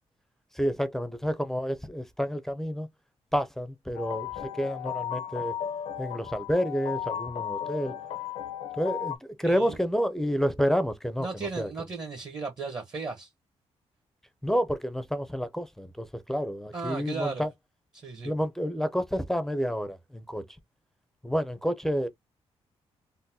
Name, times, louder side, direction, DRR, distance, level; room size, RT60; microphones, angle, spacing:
voice 1, 0.5-2.9 3.3-5.6 6.0-8.0 8.7-11.7 14.4-17.5 18.2-20.5 21.2-22.1, equal, 5° left, 0.4 m, -29 dB
sound 1, 3.9-9.2, left 10 dB, 75° left, 0.5 m, -35 dB
voice 2, 9.4-9.8 11.2-13.3 16.7-17.5 17.9-18.3, right 4 dB, 40° right, 0.8 m, -35 dB
3.8 x 2.1 x 2.6 m
cardioid pair, 110°, 11 cm